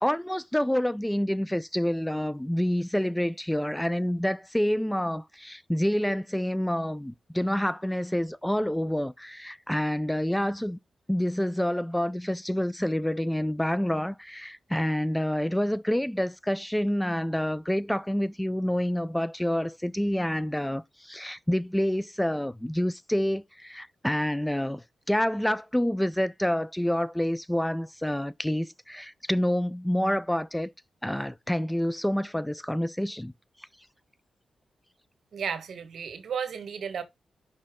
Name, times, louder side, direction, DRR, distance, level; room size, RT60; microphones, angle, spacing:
voice 1, 0.0-10.8 11.1-30.7 31.0-33.3, equal, 5° left, 0.4 m, -28 dB
voice 2, 35.3-37.0, right 7 dB, 75° right, 1.2 m, -33 dB
5.4 x 5.2 x 3.6 m
cardioid pair, 65°, 0 cm